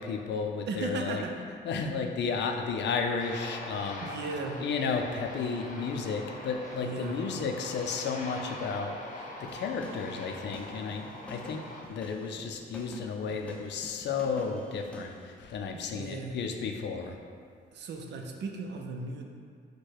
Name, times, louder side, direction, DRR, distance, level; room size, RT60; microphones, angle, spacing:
voice 1, 0.0-1.2 1.6-17.2, left 5 dB, 60° left, 4 dB, 0.4 m, -33 dB
voice 2, 0.7-1.9 4.0-4.6 6.8-7.2 15.7-16.4 17.7-19.2, right 3 dB, 60° right, 2 dB, 0.6 m, -37 dB
Aircraft, 3.2-11.8, left 1 dB, 40° left, 0.8 m, -43 dB
sound 1, 9.4-15.2, equal, 5° left, 0.5 m, -47 dB
4.6 x 2.2 x 4.6 m, 2.2 s
cardioid pair, 90°, 20 cm